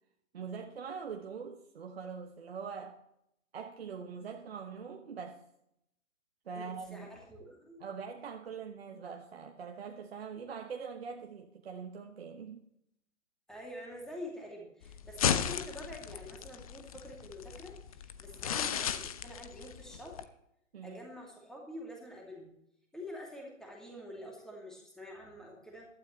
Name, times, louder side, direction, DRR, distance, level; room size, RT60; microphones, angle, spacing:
voice 1, 0.3-3.0 3.5-5.4 6.4-7.1 7.8-12.7 20.7-21.0, right 6 dB, 50° right, 1.2 m, -43 dB
voice 2, 6.5-7.8 13.5-20.2 20.8-22.5 22.9-25.9, left 1 dB, ahead, 2.6 m, -46 dB
sound 1, 14.8-20.2, left 9 dB, 30° left, 0.6 m, -35 dB
16.0 x 12.5 x 3.2 m
figure-of-eight pair, 125°, 38 cm